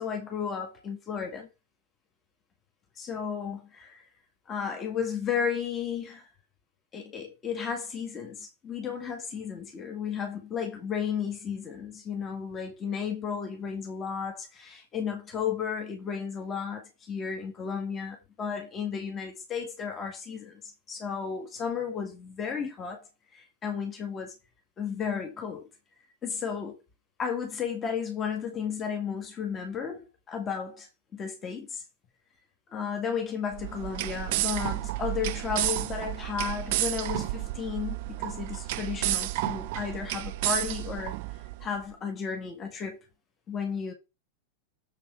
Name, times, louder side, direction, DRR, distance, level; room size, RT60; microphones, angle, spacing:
voice 1, 0.0-1.5 3.0-4.0 4.5-6.3 6.9-20.6 20.9-24.3 24.8-25.7 26.2-26.8 27.2-31.8 32.7-41.2 41.6-43.0 43.5-43.9, left 7 dB, 25° left, 1.9 m, -33 dB
sound 1, 33.5-41.7, right 17 dB, 50° right, 0.4 m, -31 dB
7.1 x 5.4 x 4.5 m
figure-of-eight pair, 90°, 0 cm